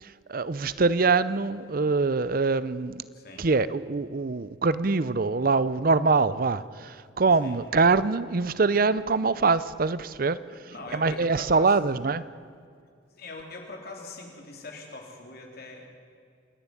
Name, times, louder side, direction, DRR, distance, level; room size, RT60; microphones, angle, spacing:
voice 1, 0.0-3.0 3.4-10.4 10.9-12.2, right 4 dB, 50° right, 16 dB, 0.6 m, -24 dB
voice 2, 3.1-3.5 7.4-7.6 10.5-12.0 13.2-16.1, left 2 dB, 55° left, 1 dB, 3.8 m, -42 dB
28.0 x 11.0 x 9.7 m, 2.3 s
head